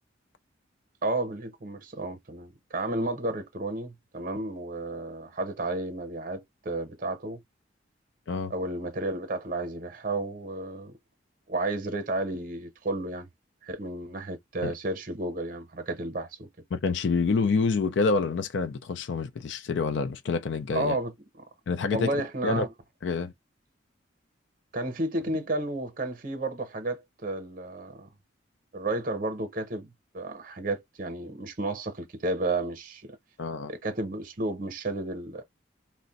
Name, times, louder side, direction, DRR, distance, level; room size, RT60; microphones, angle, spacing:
voice 1, 1.0-7.4 8.5-11.0 11.5-13.3 13.7-16.5 20.7-21.1 21.9-22.7 24.7-28.1 28.7-33.2 33.7-35.4, right 2 dB, 45° right, 0.7 m, -32 dB
voice 2, 16.7-21.0 21.7-22.7 23.0-23.3 33.4-33.7, left 4 dB, 70° left, 0.4 m, -27 dB
2.5 x 2.1 x 3.9 m
head